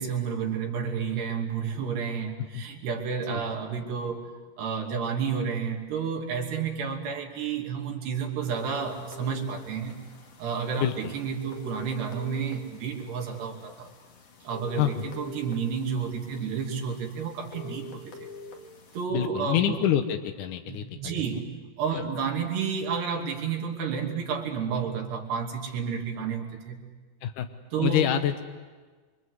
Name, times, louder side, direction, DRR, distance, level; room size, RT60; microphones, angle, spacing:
voice 1, 0.0-4.3 4.6-10.0 10.4-13.9 14.4-18.3 18.9-19.9 20.7-21.5 21.8-26.8 27.7-28.1, right 6 dB, 70° right, 1 dB, 4.7 m, -31 dB
sound 1, 8.4-19.0, left 4 dB, 45° left, 2.6 m, -46 dB
voice 2, 10.8-11.1 14.8-14.9 19.1-21.2 21.9-22.0 27.2-27.5 27.8-28.4, left 11 dB, 75° left, 7 dB, 1.9 m, -26 dB
27.5 x 24.5 x 8.0 m, 1.4 s
omnidirectional pair, 5.0 m